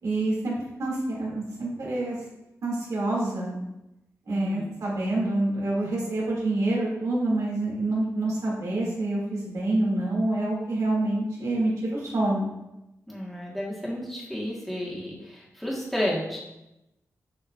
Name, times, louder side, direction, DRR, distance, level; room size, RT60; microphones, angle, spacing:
voice 1, 0.0-2.2 2.6-3.6 4.3-12.5, right 2 dB, 75° right, -4 dB, 2.5 m, -27 dB
voice 2, 4.3-4.7 13.1-16.4, equal, ahead, -6 dB, 1.5 m, -32 dB
7.0 x 6.6 x 2.5 m, 0.93 s
wide cardioid pair, 150°, 6 cm